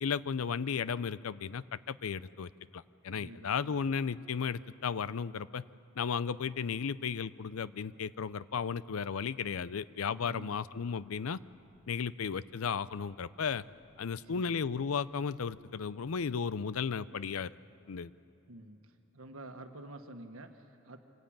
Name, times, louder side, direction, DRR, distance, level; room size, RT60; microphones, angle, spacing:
voice 1, 0.0-5.6 6.0-11.4 11.9-13.6 14.0-17.5 17.9-18.1, left 6 dB, 80° left, 17 dB, 0.5 m, -34 dB
voice 2, 3.1-3.8 10.2-10.7 14.1-14.5 18.5-21.0, right 1 dB, 70° right, 6 dB, 1.5 m, -49 dB
sound 1, 10.4-16.1, right 1 dB, 20° left, 5.1 m, -71 dB
25.5 x 15.0 x 8.9 m, 2.8 s
head